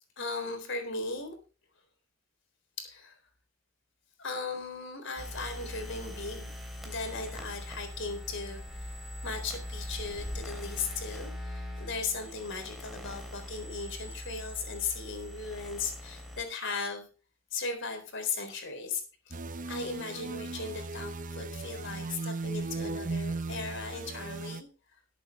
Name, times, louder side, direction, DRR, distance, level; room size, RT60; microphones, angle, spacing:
voice 1, 0.2-1.4 2.8-3.2 4.2-6.5 6.8-8.9 9.2-17.1 17.5-24.7, left 4 dB, 60° left, 6 dB, 3.9 m, -37 dB
sound 1, 5.2-16.4, left 1 dB, ahead, 3.4 m, -41 dB
sound 2, 19.3-24.6, right 3 dB, 40° right, 0.8 m, -37 dB
19.5 x 8.5 x 3.2 m, 0.34 s
head